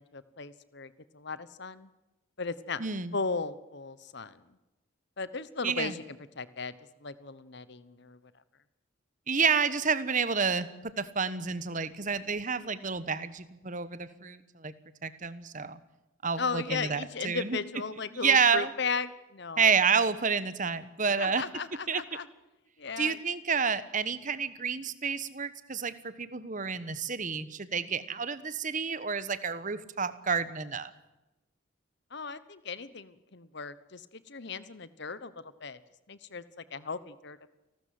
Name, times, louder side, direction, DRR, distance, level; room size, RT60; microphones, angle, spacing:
voice 1, 0.0-1.9 2.4-2.8 3.1-4.4 5.2-6.7 7.0-8.2 16.4-19.7 21.2-22.3 22.8-23.2 27.7-28.0 32.1-35.8 36.1-36.4 36.7-37.5, left 4 dB, 55° left, 15 dB, 1.1 m, -36 dB
voice 2, 2.8-3.1 5.6-5.9 9.3-10.7 11.0-14.7 15.0-15.8 16.2-17.6 18.2-18.7 19.6-21.4 21.9-22.0 23.0-30.9, right 5 dB, 40° right, 14 dB, 1.2 m, -29 dB
29.5 x 13.0 x 7.8 m, 1.0 s
head